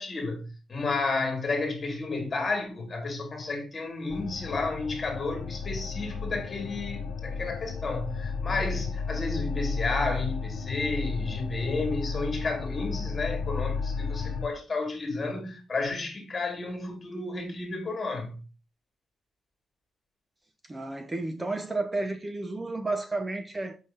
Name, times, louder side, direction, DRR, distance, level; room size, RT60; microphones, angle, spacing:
voice 1, 0.0-18.3, left 3 dB, 30° left, 1.9 m, -32 dB
sound 1, 4.1-14.5, left 5 dB, 75° left, 0.5 m, -33 dB
voice 2, 20.7-23.8, right 2 dB, 15° right, 0.6 m, -32 dB
5.4 x 3.3 x 5.5 m
cardioid pair, 140°, 0 cm